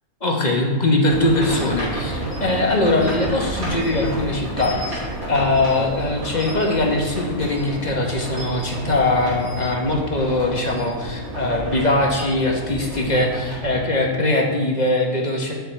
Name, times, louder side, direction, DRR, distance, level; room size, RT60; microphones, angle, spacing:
voice 1, 0.2-5.0 5.3-15.5, left 2 dB, 30° left, 0 dB, 1.3 m, -21 dB
sound 1, 1.0-13.8, right 1 dB, 75° right, 3.2 m, -30 dB
8.2 x 7.0 x 4.6 m, 1.3 s
omnidirectional pair, 1.5 m